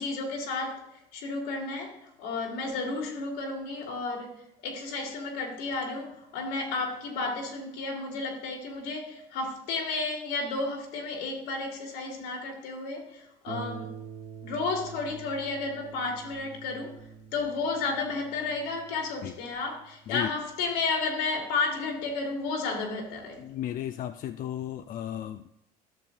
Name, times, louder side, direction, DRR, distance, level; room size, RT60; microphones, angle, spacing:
voice 1, 0.0-13.9 14.4-17.0 17.3-23.5, left 3 dB, 75° left, 2.3 m, -32 dB
Harp, 13.5-22.6 23.5-23.6 24.0-24.1, right 6 dB, 65° right, 1.5 m, -46 dB
voice 2, 23.4-25.5, left 11 dB, 45° left, 0.4 m, -34 dB
12.0 x 6.8 x 2.7 m
hypercardioid pair, 75°, 20 cm